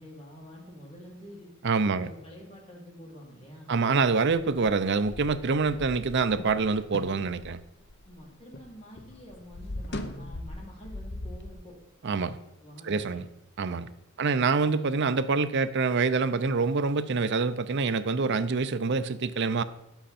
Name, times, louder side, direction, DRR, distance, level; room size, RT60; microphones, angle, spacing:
voice 1, 0.0-1.5 1.9-3.8 8.0-11.8 12.6-13.2, equal, 30° left, -3 dB, 3.0 m, -48 dB
voice 2, 1.6-2.1 3.7-7.6 12.0-12.4 12.8-13.2 13.6-13.9 14.2-19.6, right 4 dB, 55° right, 12 dB, 0.6 m, -26 dB
sound 1, 4.4-8.7 9.0-11.5, left 1 dB, 55° left, 0.9 m, -40 dB
10.0 x 8.0 x 4.2 m, 0.89 s
head